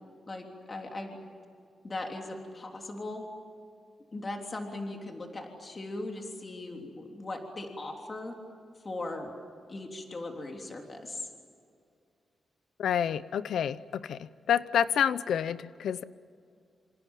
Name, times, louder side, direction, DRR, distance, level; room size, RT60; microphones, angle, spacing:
voice 1, 0.3-1.2 1.8-3.2 4.1-8.3 8.8-9.3 9.7-11.3, left 2 dB, 30° left, 2 dB, 3.4 m, -39 dB
voice 2, 12.8-16.0, left 9 dB, 85° left, 16 dB, 0.7 m, -28 dB
27.0 x 26.5 x 7.5 m, 2.3 s
wide cardioid pair, 140°, 0 cm